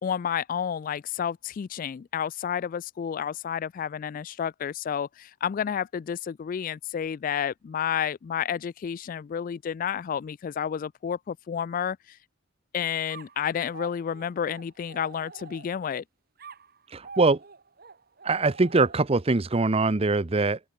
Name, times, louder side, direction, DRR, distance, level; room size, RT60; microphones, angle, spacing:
voice 1, 0.0-12.2 12.7-16.0, left 8 dB, 45° left, 0.3 m, -30 dB
sound 1, 13.1-15.9 16.4-19.3, right 5 dB, 55° right, 2.0 m, -47 dB
voice 2, 16.9-17.4 18.2-20.6, right 3 dB, 30° right, 0.7 m, -23 dB
open air
head